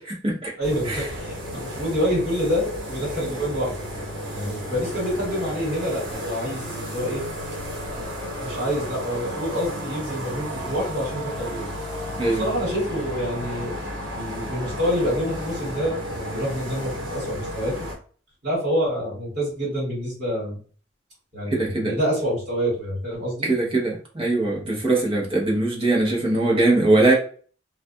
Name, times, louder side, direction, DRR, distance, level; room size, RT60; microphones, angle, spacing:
voice 1, 0.6-3.9 4.3-7.2 7.9-11.6 12.4-13.7 14.1-17.9 18.4-20.6 21.3-23.5, equal, 55° right, -7 dB, 1.4 m, -27 dB
sound 1, 0.6-18.0, equal, 70° right, 0.9 m, -33 dB
voice 2, 21.5-21.9 23.4-27.1, right 2 dB, 25° right, -2 dB, 0.8 m, -21 dB
2.4 x 2.2 x 2.6 m, 0.42 s
head